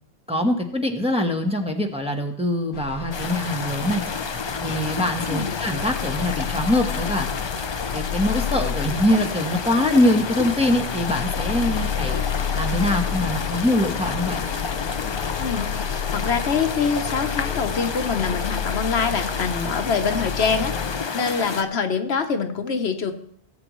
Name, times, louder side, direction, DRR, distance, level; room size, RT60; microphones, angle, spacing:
voice 1, 0.3-4.0 4.6-7.3 7.9-12.2 12.5-14.4, left 1 dB, 5° right, 2 dB, 1.1 m, -23 dB
sound 1, 2.7-21.1, left 8 dB, 60° left, 0.8 m, -30 dB
sound 2, 3.1-21.6, left 5 dB, 40° left, 0.4 m, -30 dB
voice 2, 15.4-23.1, left 5 dB, 75° left, 6 dB, 1.2 m, -25 dB
18.0 x 8.0 x 3.1 m, 0.62 s
omnidirectional pair, 1.1 m